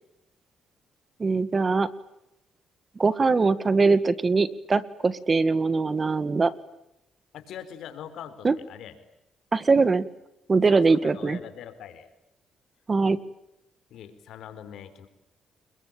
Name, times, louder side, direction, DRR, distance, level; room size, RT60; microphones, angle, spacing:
voice 1, 1.2-1.9 2.9-6.5 8.4-8.5 9.5-10.1 10.5-11.4 12.9-13.2, right 4 dB, 30° right, 14 dB, 1.8 m, -22 dB
voice 2, 7.3-8.9 10.7-12.1 13.9-15.1, left 9 dB, 80° left, 10 dB, 4.0 m, -42 dB
29.0 x 22.5 x 8.9 m, 0.85 s
cardioid pair, 90°, 0 cm